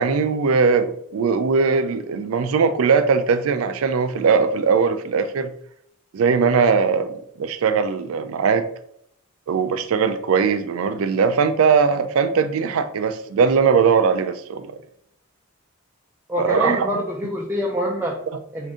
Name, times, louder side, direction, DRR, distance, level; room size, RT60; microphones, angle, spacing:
voice 1, 0.0-5.5 6.1-8.6 9.5-14.7 16.4-17.0 18.3-18.4, right 5 dB, 80° right, 11 dB, 0.4 m, -20 dB
voice 2, 16.3-18.2 18.5-18.7, equal, 10° right, -2 dB, 0.4 m, -25 dB
3.7 x 2.6 x 3.6 m, 0.69 s
head